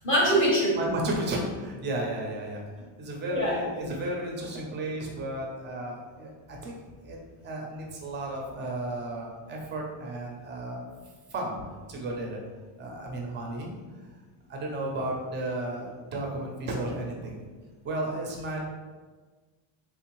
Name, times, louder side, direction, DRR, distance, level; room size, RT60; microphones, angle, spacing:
voice 1, 0.0-0.8 3.3-3.6, equal, 25° left, -3 dB, 0.6 m, -23 dB
voice 2, 0.8-2.6 3.0-6.7 7.0-7.2 7.4-10.9 11.3-11.5 11.9-12.4 12.8-13.7 14.5-17.4 17.8-18.6, right 1 dB, 25° right, 0 dB, 0.4 m, -33 dB
3.5 x 2.7 x 2.9 m, 1.4 s
cardioid pair, 160°, 49 cm